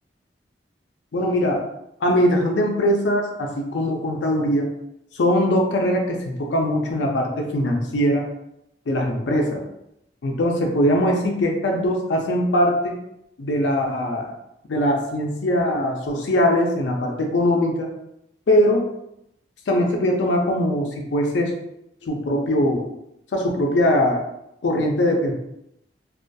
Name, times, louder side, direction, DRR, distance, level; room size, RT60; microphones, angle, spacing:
voice 1, 1.1-1.6 2.0-4.7 5.1-8.3 8.9-9.6 10.2-13.0 13.4-14.3 14.7-17.9 18.5-18.9 19.7-21.5 22.0-22.8 23.3-24.2 24.6-25.3, left 1 dB, 85° left, 1 dB, 0.4 m, -21 dB
2.3 x 2.2 x 2.5 m, 0.82 s
head